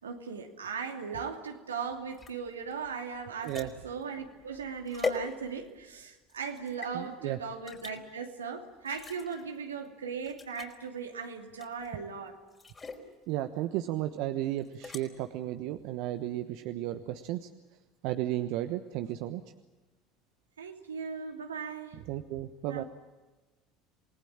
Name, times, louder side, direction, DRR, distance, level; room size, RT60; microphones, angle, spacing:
voice 1, 0.0-12.4 20.6-22.0 22.7-22.8, right 5 dB, 90° right, 3 dB, 2.7 m, -38 dB
sound 1, 2.1-5.9 6.3-6.9 7.7-8.0 8.8-9.4 9.8-9.9 10.2-10.8 11.6-12.0 12.5-13.1 14.6-15.0, left 3 dB, 25° left, 4.5 m, -40 dB
voice 2, 6.9-7.4 13.3-17.5 18.0-19.4 22.1-22.8, right 14 dB, 65° right, 8 dB, 1.2 m, -34 dB
27.5 x 19.5 x 8.8 m, 1.2 s
hypercardioid pair, 70°, 0 cm